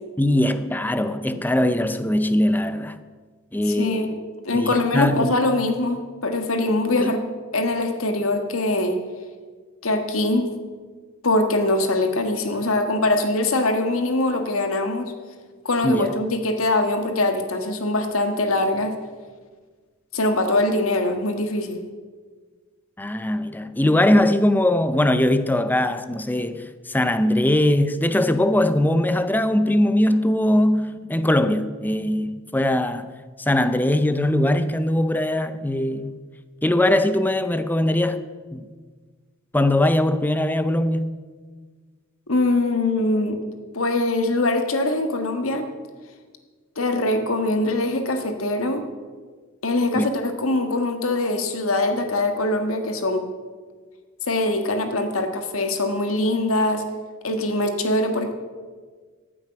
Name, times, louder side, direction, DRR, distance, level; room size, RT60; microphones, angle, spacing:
voice 1, 0.2-3.0 3.5-4.1 4.5-5.4 7.0-7.1 15.8-16.2 23.0-33.1 33.5-36.2 36.6-38.2 38.5-38.7 39.5-41.1 49.9-50.1, left 1 dB, 10° left, 0.5 m, -21 dB
voice 2, 3.6-4.1 4.4-7.2 7.5-9.0 9.8-10.5 11.2-15.1 15.6-18.9 20.1-21.8 42.3-43.4 43.7-45.7 46.8-48.8 49.6-53.2 54.3-56.8 57.2-58.3, left 2 dB, 80° left, 1.5 m, -22 dB
15.0 x 8.7 x 5.9 m
head